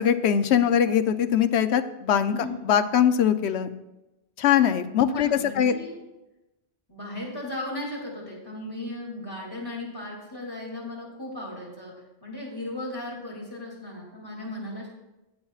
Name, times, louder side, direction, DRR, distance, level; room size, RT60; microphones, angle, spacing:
voice 1, 0.0-2.3 2.6-3.7 4.4-5.3 5.6-5.8, left 9 dB, 90° left, 10 dB, 0.9 m, -21 dB
voice 2, 5.0-5.9 6.9-11.9 12.2-14.9, left 1 dB, 20° left, -2 dB, 2.6 m, -36 dB
18.5 x 7.0 x 2.4 m, 0.97 s
omnidirectional pair, 1.1 m